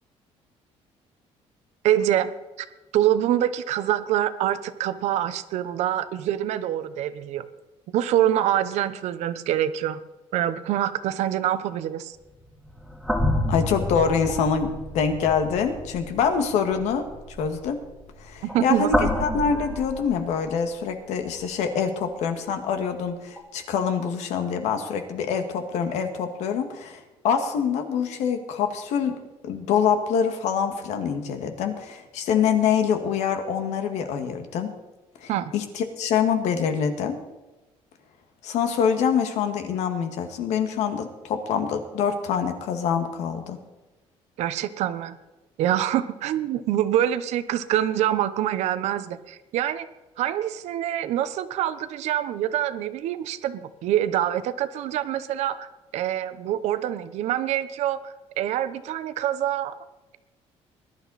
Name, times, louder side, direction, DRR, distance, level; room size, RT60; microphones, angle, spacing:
voice 1, 1.8-2.3 2.6-2.7 2.9-7.4 7.9-10.0 10.3-12.2 18.4-19.1 35.3-35.5 44.4-45.2 45.6-49.9 50.2-55.7 55.9-59.8, right 11 dB, 75° right, 12 dB, 1.0 m, -25 dB
sound 1, 12.3-20.7 21.2-21.4 23.4-23.5, left 1 dB, 5° left, 2.2 m, -30 dB
voice 2, 13.5-17.1 17.4-17.8 18.2-29.2 29.4-34.7 35.2-37.2 38.4-43.6, left 7 dB, 80° left, 6 dB, 2.0 m, -25 dB
20.5 x 11.5 x 4.2 m, 1.1 s
cardioid pair, 155°, 11 cm